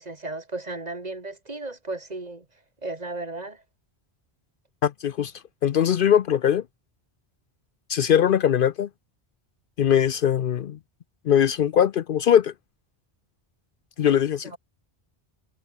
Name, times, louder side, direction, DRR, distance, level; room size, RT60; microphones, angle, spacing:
voice 1, 0.0-2.5 2.8-3.6 14.4-14.6, right 2 dB, 40° right, 2.3 m, -35 dB
voice 2, 4.8-5.3 5.6-6.6 7.9-8.9 9.8-10.8 11.3-12.5 14.0-14.6, left 9 dB, 60° left, 0.7 m, -21 dB
omnidirectional pair, 1.1 m